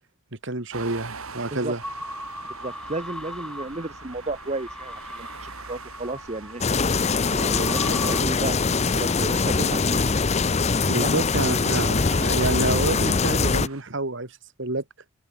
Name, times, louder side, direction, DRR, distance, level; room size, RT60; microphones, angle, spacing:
voice 1, 0.4-1.8 10.9-14.8, right 2 dB, 55° right, 1.8 m, -28 dB
sound 1, 0.7-13.8, right 4 dB, 75° right, 3.8 m, -43 dB
sound 2, 1.8-8.2, left 1 dB, 5° left, 3.8 m, -39 dB
voice 2, 2.6-6.6 7.2-10.1 11.0-11.2, right 2 dB, 30° right, 0.9 m, -33 dB
sound 3, 6.6-13.7, left 4 dB, 30° left, 0.6 m, -22 dB
open air
head